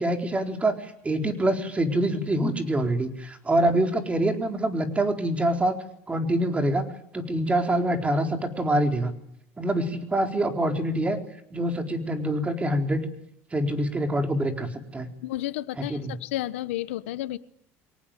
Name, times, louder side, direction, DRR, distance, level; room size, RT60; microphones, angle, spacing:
voice 1, 0.0-5.7 6.1-6.8 7.1-9.1 9.6-11.2 11.5-13.1 13.5-15.1 15.9-16.1, right 1 dB, 20° right, 5 dB, 4.2 m, -25 dB
voice 2, 15.2-17.4, left 15 dB, 90° left, 15 dB, 1.1 m, -31 dB
23.0 x 18.5 x 9.1 m, 0.74 s
supercardioid pair, 90°, 7 cm